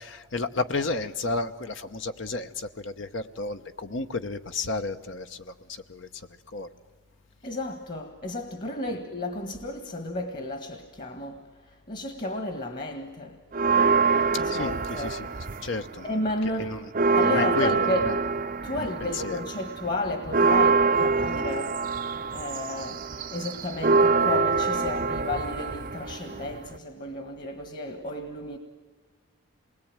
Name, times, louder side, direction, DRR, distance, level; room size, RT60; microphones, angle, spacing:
voice 1, 0.0-6.1 6.5-6.7 14.3-15.3 15.6-16.1 16.6-16.8 17.3-18.1 18.8-19.4, left 3 dB, 65° left, 1.0 m, -32 dB
voice 2, 7.4-13.4 14.3-15.2 16.0-16.8 17.1-18.1 18.6-21.8 22.3-28.6, left 1 dB, 40° left, 1.6 m, -33 dB
sound 1, 13.5-15.9 16.3-26.8, right 4 dB, 40° right, 0.7 m, -25 dB
28.0 x 21.0 x 8.9 m
head